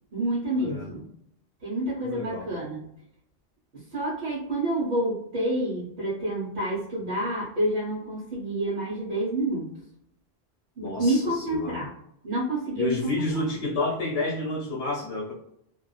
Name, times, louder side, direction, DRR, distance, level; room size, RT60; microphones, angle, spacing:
voice 1, 0.1-1.0 1.6-2.9 3.7-9.7 10.8-11.9 12.2-13.4, right 1 dB, 70° right, -7 dB, 1.1 m, -28 dB
voice 2, 2.0-2.5 10.8-11.8 12.8-15.3, left 2 dB, 80° left, -2 dB, 0.9 m, -30 dB
2.5 x 2.2 x 2.2 m, 0.74 s
omnidirectional pair, 1.1 m